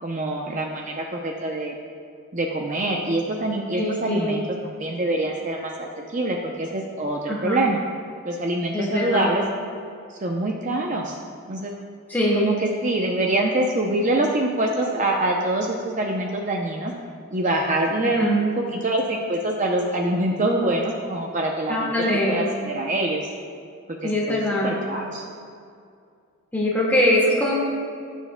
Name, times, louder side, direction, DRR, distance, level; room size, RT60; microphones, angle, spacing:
voice 1, 0.0-1.7 2.3-7.8 8.2-9.4 10.1-11.2 11.5-11.7 12.3-16.9 17.3-21.9 22.3-23.3 24.0-25.2, right 1 dB, 35° right, 1 dB, 0.6 m, -25 dB
voice 2, 3.7-4.3 7.3-7.6 8.7-9.3 12.1-12.5 18.0-18.4 21.7-22.5 24.0-24.7 26.5-27.6, left 1 dB, 10° left, -5 dB, 1.8 m, -22 dB
17.5 x 7.3 x 2.2 m, 2.3 s
head